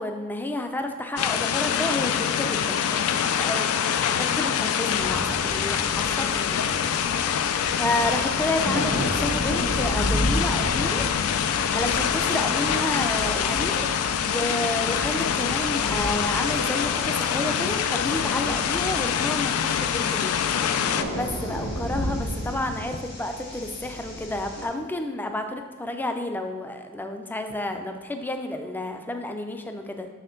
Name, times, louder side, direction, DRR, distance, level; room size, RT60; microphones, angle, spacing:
voice 1, 0.0-6.6 7.2-11.3 11.7-20.3 21.1-30.1, left 1 dB, 10° left, 6 dB, 0.4 m, -31 dB
sound 1, 1.2-21.0, left 8 dB, 85° left, 0.3 m, -25 dB
sound 2, 4.9-24.7, equal, 45° left, 1.6 m, -33 dB
6.4 x 4.2 x 3.8 m, 1.4 s
head